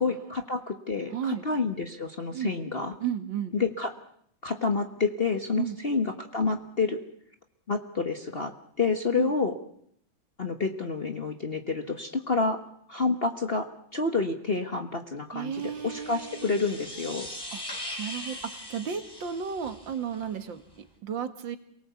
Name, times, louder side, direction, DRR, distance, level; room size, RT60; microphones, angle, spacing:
voice 1, 0.0-2.9 3.5-3.9 4.4-7.0 7.7-8.5 8.8-9.5 10.4-12.6 12.9-17.3, left 4 dB, 35° left, 6 dB, 1.4 m, -28 dB
voice 2, 1.1-1.4 2.3-2.5 3.0-3.6 5.6-5.8 9.2-9.3 15.3-16.5 17.5-17.6 18.0-21.6, right 8 dB, 70° right, 10 dB, 2.3 m, -33 dB
sound 1, 15.5-20.3, left 1 dB, 10° left, 3.5 m, -41 dB
27.5 x 18.5 x 8.4 m, 0.68 s
omnidirectional pair, 2.2 m